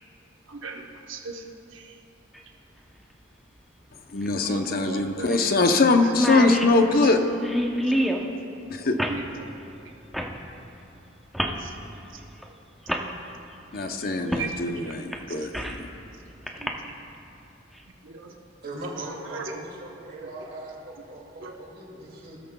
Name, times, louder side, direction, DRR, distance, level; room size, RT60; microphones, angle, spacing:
voice 1, 0.5-1.4 1.7-2.0 4.4-5.3 6.3-6.4 7.0-7.1 9.1-9.5 11.5-11.7 14.2-14.6 15.3-15.5 16.6-16.7 18.0-18.3 19.3-19.6 21.4-21.5, right 4 dB, 80° right, 2 dB, 0.9 m, -38 dB
sound 1, 2.3-2.4 4.2-4.3 4.7-4.8 5.3-5.5 5.8-5.9 6.1-8.3 9.0-9.2 10.1-10.4 11.3-11.6 12.4-12.5 12.9-13.1 14.3-14.5 14.9-15.8 16.5-16.7, equal, ahead, 0.7 m, -27 dB
voice 2, 4.1-7.2 8.7-9.0 13.7-15.9, left 3 dB, 50° left, 6 dB, 0.7 m, -22 dB
voice 3, 18.6-22.4, right 1 dB, 50° right, -2 dB, 2.3 m, -39 dB
17.0 x 13.5 x 2.2 m, 2.8 s
head